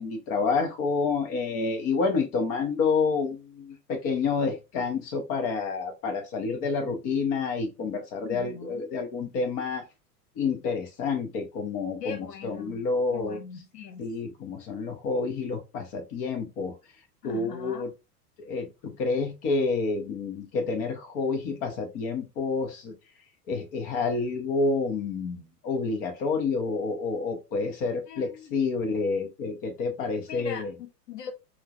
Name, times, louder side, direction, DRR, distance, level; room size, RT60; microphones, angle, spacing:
voice 1, 0.0-9.8 10.4-13.4 14.0-16.7 17.2-17.9 18.4-22.9 23.5-30.7, left 4 dB, 20° left, 0.4 m, -29 dB
voice 2, 8.2-8.8 12.0-12.8 13.1-14.1 17.2-17.9 28.1-28.5 30.3-31.3, left 7 dB, 75° left, 0.9 m, -40 dB
4.3 x 2.1 x 2.3 m
figure-of-eight pair, 90°, 49 cm